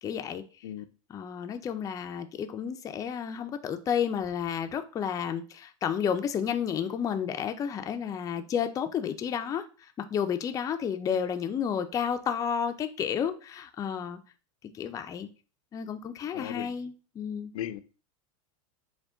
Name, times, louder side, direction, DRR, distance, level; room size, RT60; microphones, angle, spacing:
voice 1, 0.0-0.4 1.1-9.7 10.1-14.2 14.7-15.3 15.7-17.5, left 8 dB, 20° left, 0.4 m, -31 dB
voice 2, 16.3-16.7 17.5-17.8, left 11 dB, 80° left, 0.4 m, -36 dB
4.7 x 2.2 x 3.7 m
supercardioid pair, 125°, 18 cm